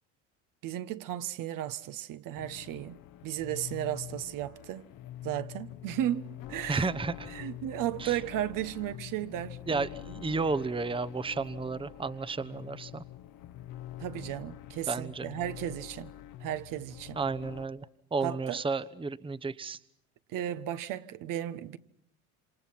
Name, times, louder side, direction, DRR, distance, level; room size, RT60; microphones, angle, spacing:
voice 1, 0.6-3.0 3.2-4.9 5.2-6.9 7.3-9.9 14.0-16.1 16.4-17.2 18.2-18.6 20.3-21.8, right 12 dB, 55° right, 1.4 m, -35 dB
sound 1, 2.4-17.7, left 12 dB, 60° left, 1.3 m, -46 dB
voice 2, 6.7-7.3 8.0-8.2 9.7-13.0 14.9-15.3 17.1-17.8 18.1-19.8, right 4 dB, 15° right, 1.1 m, -32 dB
27.5 x 26.5 x 5.8 m
hypercardioid pair, 80°, 38 cm